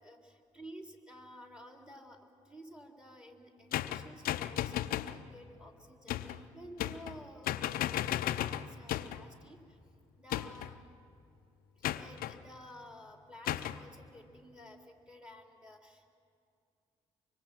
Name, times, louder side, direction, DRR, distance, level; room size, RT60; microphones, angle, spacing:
voice 1, 0.0-2.2 2.5-9.6 10.2-11.0 11.8-16.1, equal, 5° right, 3 dB, 3.5 m, -53 dB
sound 1, 3.7-5.2 6.1-6.4 6.8-7.2 7.5-9.3 10.3-10.8 11.8-12.4 13.5-13.8, left 12 dB, 70° left, 0.6 m, -34 dB
24.5 x 23.0 x 6.1 m, 2.4 s
hypercardioid pair, 45°, 16 cm